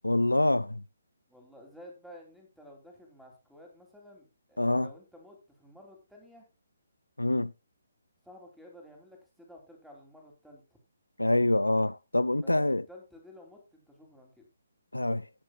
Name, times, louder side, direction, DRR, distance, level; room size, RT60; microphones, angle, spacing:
voice 1, 0.0-0.8 4.6-4.9 7.2-7.5 11.2-12.8 14.9-15.3, left 1 dB, 85° left, 0.4 m, -26 dB
voice 2, 1.3-6.5 8.2-10.8 12.4-14.5, left 1 dB, ahead, 3.1 m, -53 dB
18.0 x 7.3 x 2.4 m
figure-of-eight pair, 140°, 0 cm